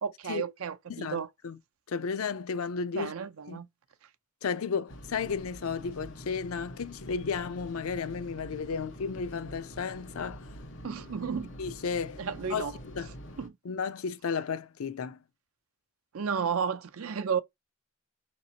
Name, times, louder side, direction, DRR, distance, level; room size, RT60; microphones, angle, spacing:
voice 1, 0.0-1.3 2.9-3.7 10.8-11.6 12.2-12.8 13.4-13.5 16.1-17.4, right 6 dB, 80° right, 0.5 m, -32 dB
voice 2, 0.9-1.6 1.9-3.1 3.5-3.6 4.4-10.5 11.6-12.2 12.5-13.1 13.6-15.2, left 5 dB, 85° left, 0.5 m, -33 dB
sound 1, 4.9-13.5, equal, 60° left, 1.3 m, -46 dB
4.9 x 3.0 x 2.8 m
head